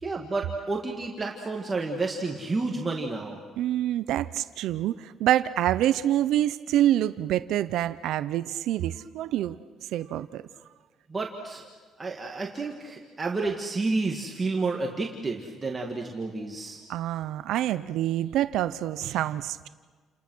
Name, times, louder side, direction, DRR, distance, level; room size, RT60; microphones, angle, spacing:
voice 1, 0.0-3.4 11.1-11.6 12.0-16.8, right 3 dB, 15° right, 0 dB, 1.7 m, -30 dB
voice 2, 3.6-9.6 9.9-10.4 16.9-19.7, right 12 dB, 70° right, 14 dB, 0.7 m, -26 dB
30.0 x 28.0 x 6.3 m, 1.5 s
cardioid pair, 170°, 0 cm